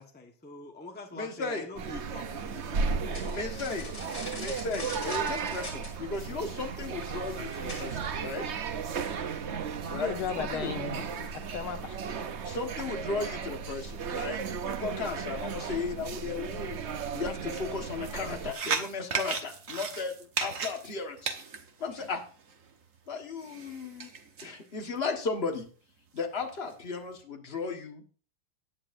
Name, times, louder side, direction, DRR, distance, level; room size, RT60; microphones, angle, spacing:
voice 1, 0.0-3.4, left 2 dB, 5° left, 1.0 m, -45 dB
voice 2, 1.1-1.7 3.3-3.9 4.4-8.5 9.9-10.7 12.4-16.8 17.1-20.1 20.4-21.4 21.8-22.2 23.1-24.1 24.4-25.7 26.1-28.0, left 4 dB, 30° left, 1.6 m, -35 dB
sound 1, 1.8-18.5, right 5 dB, 70° right, 0.6 m, -35 dB
sound 2, 3.1-8.2, left 2 dB, 55° left, 7.3 m, -43 dB
voice 3, 9.9-12.0, left 8 dB, 85° left, 1.8 m, -36 dB
sound 3, 18.0-22.6 23.4-24.5 25.0-25.1 25.5-25.6 26.2-26.7, right 5 dB, 45° right, 1.4 m, -35 dB
17.5 x 10.0 x 2.7 m
omnidirectional pair, 2.3 m